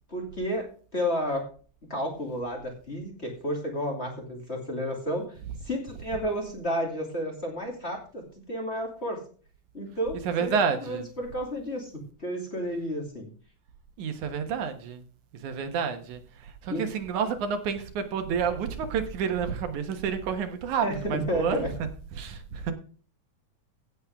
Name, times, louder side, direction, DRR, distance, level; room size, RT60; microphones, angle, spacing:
voice 1, 0.1-0.7 0.9-1.4 1.9-5.3 5.6-8.2 8.5-9.2 9.7-11.9 12.2-13.3 16.7-16.9 20.8-21.7, equal, 20° left, 2.7 m, -31 dB
voice 2, 10.3-11.0 14.0-15.1 15.4-21.7 22.2-22.7, right 6 dB, 80° right, 2.7 m, -29 dB
16.0 x 7.6 x 3.6 m
omnidirectional pair, 3.4 m